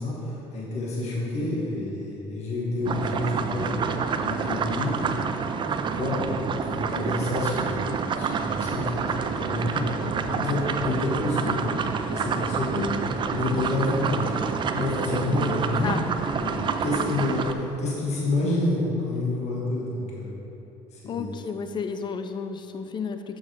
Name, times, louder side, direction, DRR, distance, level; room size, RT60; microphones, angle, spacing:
voice 1, 0.0-5.2 5.7-11.6 12.1-13.0 13.3-14.3 14.7-15.9 16.4-20.3 20.9-21.3, left 2 dB, 50° left, -4 dB, 1.6 m, -29 dB
sound 1, 2.8-17.5, right 6 dB, 35° right, 0.4 m, -28 dB
voice 2, 21.1-23.4, left 5 dB, 35° left, 8 dB, 0.5 m, -32 dB
7.0 x 6.5 x 3.4 m, 2.9 s
supercardioid pair, 85°, 14 cm